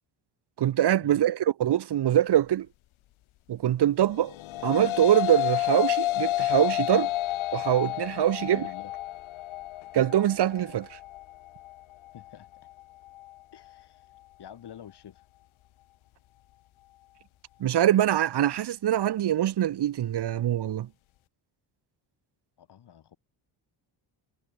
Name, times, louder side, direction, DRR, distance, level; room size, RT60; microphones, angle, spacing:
voice 1, 0.6-2.7 3.5-4.3 4.6-7.1 7.5-8.7 9.9-11.0 17.6-20.9, right 11 dB, 55° right, 1.6 m, -24 dB
sound 1, 4.2-13.3, left 16 dB, 85° left, 1.9 m, -31 dB
voice 2, 8.5-8.9 12.1-12.5 13.5-14.1 14.4-15.2 22.6-23.2, left 9 dB, 55° left, 5.6 m, -47 dB
cardioid pair, 120°, 47 cm